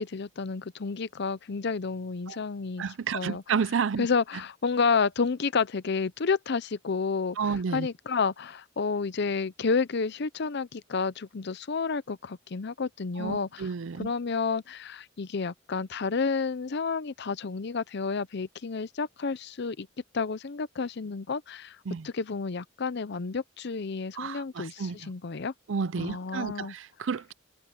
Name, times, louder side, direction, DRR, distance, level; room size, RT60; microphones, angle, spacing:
voice 1, 0.0-2.8 3.1-3.4 4.0-13.7 14.0-19.9 20.1-21.8 22.0-25.5 26.0-26.7, left 5 dB, 55° left, 0.6 m, -30 dB
voice 2, 2.8-4.1 7.4-7.9 13.2-14.1 21.9-22.1 24.1-25.1 25.7-27.3, right 6 dB, 65° right, 0.5 m, -31 dB
head